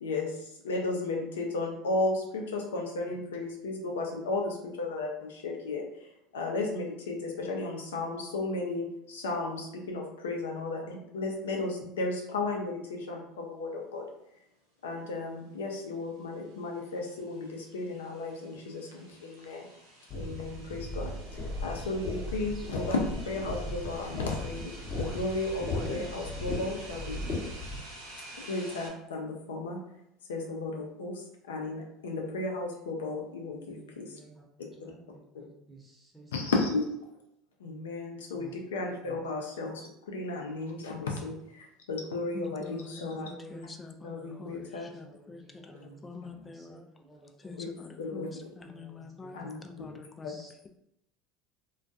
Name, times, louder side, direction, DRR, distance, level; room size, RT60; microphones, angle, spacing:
voice 1, 0.0-5.8 6.3-14.1 14.8-19.7 20.1-21.1 21.6-27.2 28.4-29.8 30.3-34.2 36.3-36.9 37.6-43.3 44.0-44.9 47.6-47.7 48.0-48.5 49.3-49.6, left 2 dB, 80° left, 1 dB, 0.5 m, -34 dB
sound 1, 16.3-28.9, right 1 dB, 85° right, 0.7 m, -50 dB
sound 2, 20.1-27.8, left 2 dB, 45° left, 0.7 m, -37 dB
Ocean, 21.3-27.6, equal, 30° right, 0.5 m, -48 dB
voice 2, 33.7-36.5 38.3-38.6 39.0-39.4 42.3-42.7 43.0-43.7 44.0-47.6 48.6-50.5, right 2 dB, 10° right, -3 dB, 0.9 m, -53 dB
voice 3, 42.3-46.9 47.4-50.7, left 4 dB, 25° left, 5 dB, 0.3 m, -46 dB
2.2 x 2.2 x 2.6 m, 0.80 s
hypercardioid pair, 75°, 0 cm